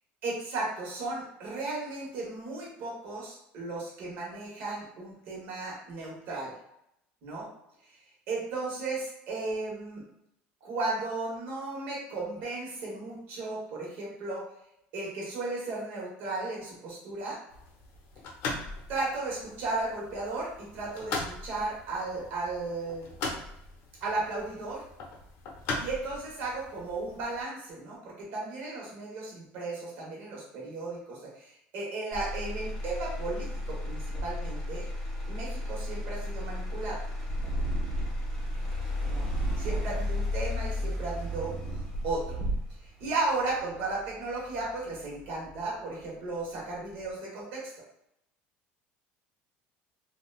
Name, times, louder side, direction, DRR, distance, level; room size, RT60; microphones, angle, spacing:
voice 1, 0.2-6.5 7.2-7.5 8.3-10.0 10.6-14.5 14.9-17.4 18.9-23.1 24.0-24.8 25.8-34.9 35.3-37.0 39.0-39.3 39.6-41.6 42.0-42.4 43.0-47.7, right 3 dB, 55° right, -4 dB, 1.2 m, -35 dB
sound 1, 17.5-27.4, left 3 dB, 55° left, 0.7 m, -40 dB
Motor vehicle (road), 32.1-46.1 46.6-47.1, left 1 dB, 10° left, 0.7 m, -35 dB
Purr, 37.2-38.3 39.0-40.1 40.8-42.9, right 1 dB, 80° right, 0.9 m, -33 dB
3.8 x 2.2 x 2.3 m, 0.76 s
cardioid pair, 165°, 5 cm